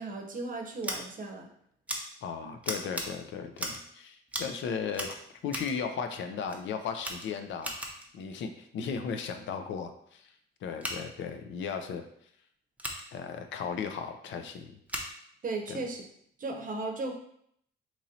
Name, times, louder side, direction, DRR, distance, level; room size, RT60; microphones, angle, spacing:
voice 1, 0.0-1.5 15.4-16.0 16.4-17.1, right 3 dB, 45° right, 3 dB, 0.7 m, -36 dB
Scissors, 0.8-1.0 1.9-2.0 2.6-3.1 3.5-3.9 4.3-4.6 4.9-5.8 6.5-6.6 7.0-8.1 10.7-11.0 12.8-13.0 14.9-15.1, right 1 dB, 5° right, 0.6 m, -37 dB
voice 2, 2.2-5.2 5.4-7.7 8.1-10.3 10.6-12.0 13.1-14.8 15.7-15.8, left 6 dB, 70° left, 7 dB, 0.5 m, -36 dB
3.0 x 2.6 x 4.1 m, 0.69 s
cardioid pair, 90°, 20 cm